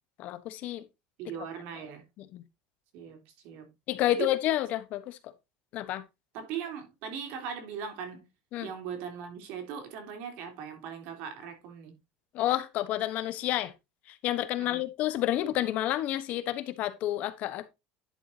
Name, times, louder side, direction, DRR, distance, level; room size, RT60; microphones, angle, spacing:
voice 1, 0.2-0.8 2.2-2.4 3.9-5.2 5.7-6.0 8.5-8.7 12.3-13.7 14.2-17.7, left 13 dB, 45° left, 1.1 m, -30 dB
voice 2, 1.2-2.0 2.9-3.7 4.1-4.3 6.3-8.3 8.6-12.0 14.6-14.8, right 7 dB, 60° right, 3.4 m, -39 dB
11.0 x 7.2 x 2.8 m
cardioid pair, 165°, 3 cm